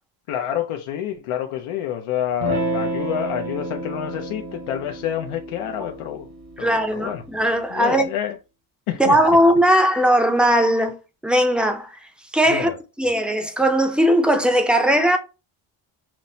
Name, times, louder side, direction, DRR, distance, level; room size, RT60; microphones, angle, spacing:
voice 1, 0.3-6.3 6.6-7.2 7.7-8.3 8.9-9.2 12.5-12.8, left 10 dB, 90° left, 0.7 m, -28 dB
Electric guitar / Strum, 2.4-7.5, right 2 dB, 85° right, 1.3 m, -31 dB
voice 2, 6.6-8.1 9.0-10.9 11.2-11.9 12.3-12.7 13.0-15.2, equal, ahead, 0.4 m, -18 dB
5.9 x 2.0 x 2.7 m
cardioid pair, 125°, 49 cm